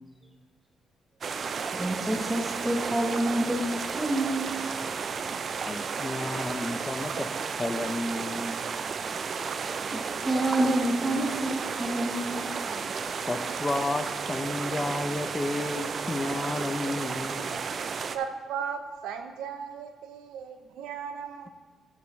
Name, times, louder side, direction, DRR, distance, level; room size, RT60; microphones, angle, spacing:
sound 1, 1.2-18.2, right 5 dB, 50° right, 0.5 m, -33 dB
voice 1, 1.7-3.6 3.9-4.5 9.9-12.4, right 1 dB, 10° right, -1 dB, 1.1 m, -28 dB
voice 2, 5.6-7.3 7.5-8.7 12.5-17.6, left 2 dB, 20° left, 8 dB, 0.6 m, -32 dB
voice 3, 18.1-21.5, right 7 dB, 90° right, 7 dB, 0.7 m, -36 dB
13.0 x 6.0 x 3.2 m, 1.5 s
cardioid pair, 90°, 0 cm